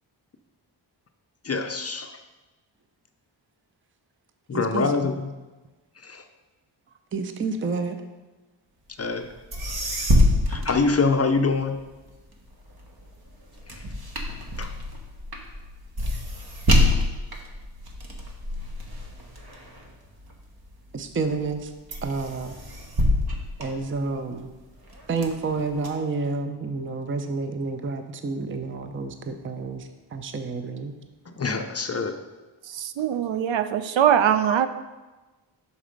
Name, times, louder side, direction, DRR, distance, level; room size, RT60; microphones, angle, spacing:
voice 1, 1.4-2.1 4.5-5.3 6.0-6.2 9.0-9.3 10.5-11.7 14.6-14.7 31.4-32.1 34.5-34.6, left 4 dB, 35° left, 6 dB, 0.5 m, -24 dB
voice 2, 4.5-5.1 7.1-8.0 20.9-21.7 22.0-22.6 23.6-24.5 25.1-30.9, right 4 dB, 25° right, 7 dB, 0.5 m, -29 dB
sound 1, 9.2-9.3 9.5-11.6 12.1-20.7 21.2-21.6 21.9-24.4 24.9-25.9, left 1 dB, 50° right, 1.0 m, -26 dB
voice 3, 32.7-34.7, right 9 dB, 75° right, 11 dB, 0.5 m, -22 dB
6.0 x 4.1 x 5.1 m, 1.2 s
wide cardioid pair, 85°, 47 cm